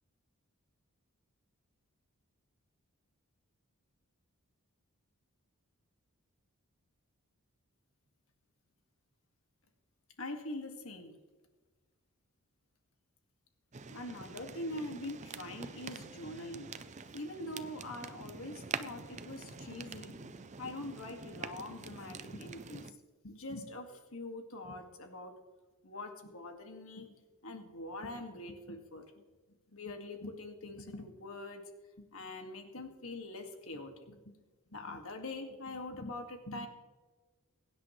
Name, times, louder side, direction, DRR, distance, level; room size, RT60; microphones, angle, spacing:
voice 1, 10.2-11.2 13.9-16.7 17.1-23.0 23.2-25.4 25.8-27.2 27.4-29.1 29.7-31.7 32.0-34.3 34.7-36.7, left 2 dB, 65° left, 4 dB, 2.0 m, -44 dB
sound 1, 13.7-22.9, right 5 dB, 30° right, 0.5 m, -46 dB
22.5 x 10.5 x 3.2 m, 1.3 s
head